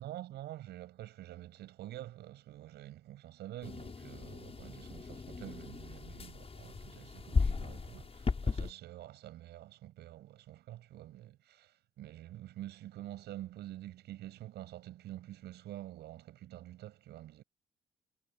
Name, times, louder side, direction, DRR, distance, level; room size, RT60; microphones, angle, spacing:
voice 1, 0.0-17.4, right 14 dB, 85° right, 7.6 m, -47 dB
sound 1, 3.6-8.7, left 4 dB, 35° left, 6.9 m, -36 dB
supercardioid pair, 65°, 17 cm